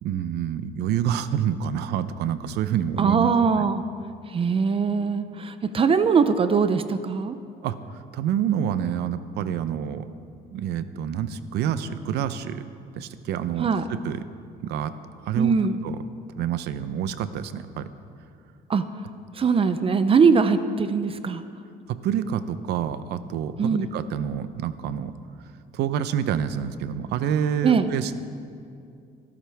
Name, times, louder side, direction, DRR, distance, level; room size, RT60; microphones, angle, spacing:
voice 1, 0.0-3.3 7.6-7.8 8.1-10.1 10.5-12.6 12.9-14.2 14.6-14.9 15.2-15.5 15.8-16.0 16.4-17.9 21.9-25.1 25.7-28.1, right 9 dB, 80° right, 12 dB, 0.7 m, -27 dB
voice 2, 3.0-3.8 4.3-7.4 13.6-13.8 15.3-15.8 18.7-18.8 19.4-21.4 23.6-23.9 27.6-27.9, right 5 dB, 35° right, 11 dB, 0.6 m, -21 dB
23.5 x 12.5 x 3.5 m, 2.4 s
cardioid pair, 110°, 17 cm